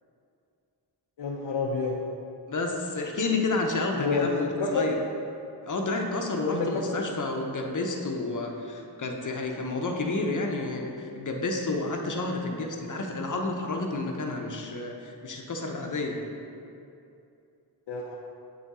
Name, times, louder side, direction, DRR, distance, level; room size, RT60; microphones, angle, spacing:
voice 1, 1.2-2.0 3.9-4.3 4.6-4.9 6.5-7.0 17.9-18.2, left 4 dB, 85° left, -2 dB, 0.7 m, -28 dB
voice 2, 2.5-5.0 5.6-16.2, left 2 dB, 45° left, 1 dB, 0.7 m, -30 dB
7.8 x 3.7 x 4.1 m, 2.7 s
wide cardioid pair, 90°, 43 cm